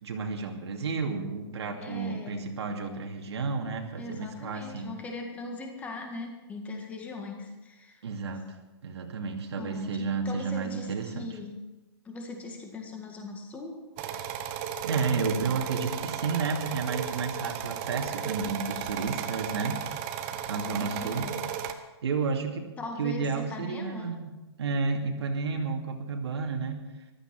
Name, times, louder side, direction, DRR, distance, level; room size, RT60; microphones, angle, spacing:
voice 1, 0.0-4.9 8.0-8.5 8.8-11.3 14.8-19.8 20.5-21.3 22.0-22.7 23.0-24.3 24.6-26.8, right 4 dB, 75° right, 2 dB, 2.5 m, -31 dB
voice 2, 1.7-2.5 4.0-8.0 9.6-11.6 12.0-13.8 20.4-21.3 22.8-24.1, left 3 dB, 10° left, 3 dB, 1.9 m, -40 dB
sound 1, 14.0-21.7, right 8 dB, 25° right, 1.0 m, -34 dB
14.5 x 13.0 x 6.1 m, 1.1 s
hypercardioid pair, 165°, 14 cm